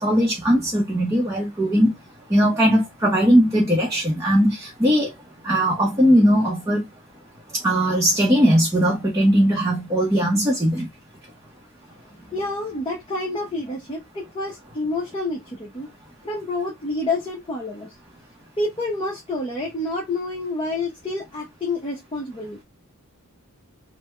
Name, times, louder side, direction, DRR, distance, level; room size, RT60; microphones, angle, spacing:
voice 1, 0.0-1.9 2.3-5.1 5.4-6.9 7.6-10.9, equal, 15° right, 0.7 m, -19 dB
voice 2, 12.2-15.9 16.2-17.9 18.6-22.6, left 2 dB, 20° left, 0.8 m, -28 dB
3.4 x 2.0 x 3.2 m
head